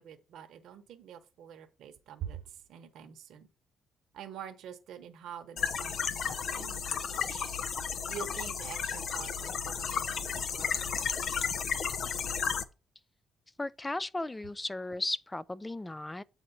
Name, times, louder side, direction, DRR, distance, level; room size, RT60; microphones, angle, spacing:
voice 1, 0.0-3.5 4.1-7.5 8.1-10.8, right 9 dB, 75° right, 0.9 m, -46 dB
sound 1, 5.6-12.6, left 6 dB, 60° left, 0.6 m, -33 dB
voice 2, 13.6-16.2, left 2 dB, 15° left, 0.4 m, -35 dB
8.0 x 4.3 x 4.1 m
cardioid pair, 90°, 0 cm